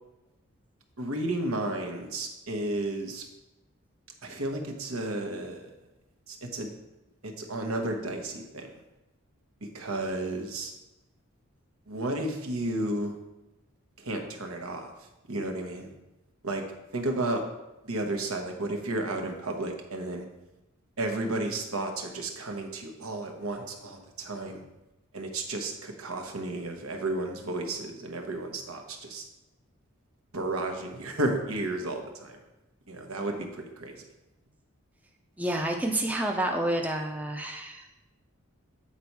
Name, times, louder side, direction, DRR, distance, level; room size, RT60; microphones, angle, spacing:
voice 1, 1.0-3.2 4.2-5.7 6.3-6.7 7.2-8.7 9.6-10.7 11.9-13.2 14.0-14.9 15.3-15.9 16.4-16.6 16.9-17.4 17.8-20.3 21.0-24.6 25.1-29.2 30.3-32.4 32.9-34.0, right 2 dB, 80° right, 3 dB, 1.1 m, -32 dB
voice 2, 35.4-38.0, right 1 dB, 5° right, 2 dB, 0.5 m, -29 dB
8.6 x 4.2 x 4.6 m, 0.98 s
head